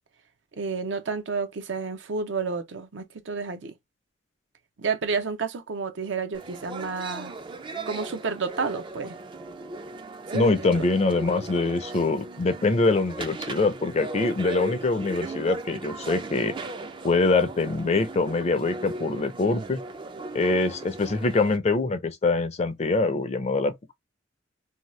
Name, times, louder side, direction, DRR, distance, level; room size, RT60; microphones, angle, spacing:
voice 1, 0.5-3.7 4.8-7.3 7.9-9.2 10.3-10.7, right 4 dB, 70° right, 0.6 m, -30 dB
sound 1, 6.3-21.6, right 3 dB, 25° right, 0.4 m, -37 dB
voice 2, 10.3-16.5 17.0-19.8 20.3-23.9, left 3 dB, 35° left, 0.5 m, -24 dB
2.8 x 2.3 x 3.0 m
head